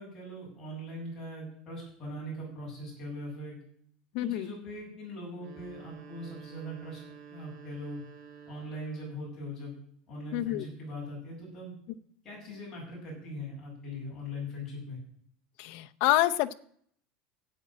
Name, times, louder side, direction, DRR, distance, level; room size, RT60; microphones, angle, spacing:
voice 1, 0.0-3.6 4.2-7.0 7.3-8.0 8.5-9.8 10.1-11.7 12.2-15.0, left 1 dB, 15° left, -5 dB, 8.0 m, -41 dB
voice 2, 4.1-4.5 10.3-10.7 15.6-16.5, left 15 dB, 55° left, 9 dB, 0.7 m, -27 dB
sound 1, 5.3-9.3, right 7 dB, 65° right, 5.6 m, -50 dB
11.0 x 8.5 x 8.9 m, 0.63 s
cardioid pair, 170°, 3 cm